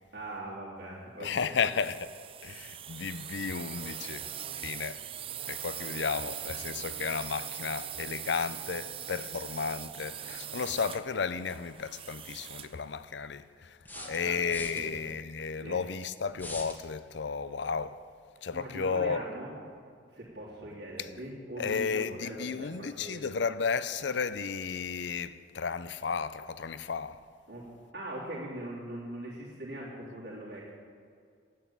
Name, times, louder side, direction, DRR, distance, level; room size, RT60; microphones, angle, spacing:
voice 1, 0.1-1.7 13.9-14.4 14.7-14.9 15.6-15.8 18.5-19.5 20.1-23.2 27.5-30.7, right 1 dB, 75° right, 3.3 m, -41 dB
voice 2, 1.2-2.1 2.4-4.3 4.5-5.0 5.5-13.8 14.1-18.0 18.4-19.2 21.6-27.2, left 5 dB, 75° left, 0.5 m, -33 dB
sound 1, 1.2-12.8, right 10 dB, 30° right, 0.4 m, -41 dB
sound 2, 13.8-14.8 16.4-16.8, left 2 dB, 10° left, 1.1 m, -42 dB
11.5 x 9.3 x 8.6 m
head